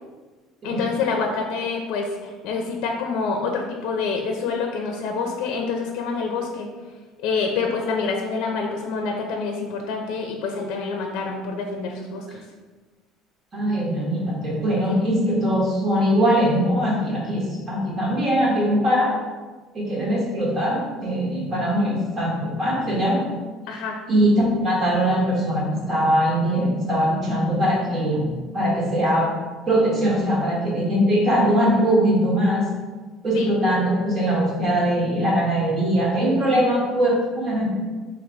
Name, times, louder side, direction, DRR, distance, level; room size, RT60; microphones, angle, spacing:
voice 1, 0.6-6.7 7.2-12.4 14.9-15.1 23.7-24.0 33.3-33.5, left 4 dB, 65° left, 2 dB, 0.5 m, -27 dB
voice 2, 13.5-19.1 19.7-23.2 24.1-29.3 29.7-32.7 33.2-37.7, equal, 30° right, -4 dB, 1.3 m, -21 dB
3.2 x 3.0 x 4.7 m, 1.3 s
cardioid pair, 155°, 0 cm